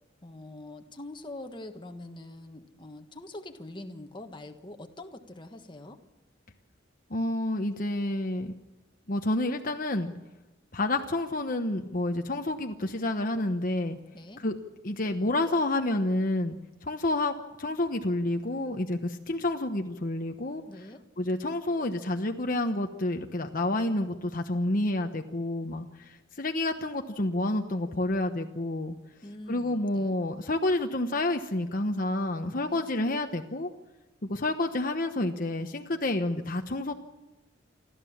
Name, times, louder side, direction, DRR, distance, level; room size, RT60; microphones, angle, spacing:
voice 1, 0.2-6.0 14.1-14.4 20.7-21.0 29.2-30.2 32.5-32.9, left 1 dB, 25° left, 5 dB, 1.5 m, -44 dB
voice 2, 7.1-8.5 9.1-10.1 10.7-14.0 14.4-14.6 14.8-20.8 21.2-29.0 29.5-33.7 34.3-36.9, left 1 dB, 45° left, 5 dB, 1.1 m, -29 dB
28.5 x 13.0 x 7.3 m, 1.1 s
head